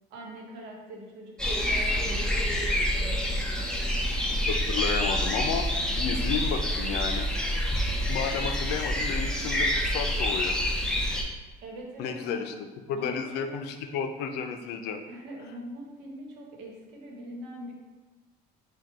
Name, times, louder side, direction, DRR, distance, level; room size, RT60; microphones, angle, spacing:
voice 1, 0.1-3.6 11.6-12.6 12.9-13.5 15.1-17.7, right 1 dB, 85° right, -1 dB, 1.1 m, -42 dB
sound 1, 1.4-11.2, equal, 5° left, 0.7 m, -27 dB
voice 2, 4.5-7.3 8.1-10.6 12.0-12.5 12.9-15.0, left 6 dB, 70° left, 6 dB, 0.5 m, -32 dB
4.6 x 2.3 x 4.7 m, 1.2 s
cardioid pair, 105°, 17 cm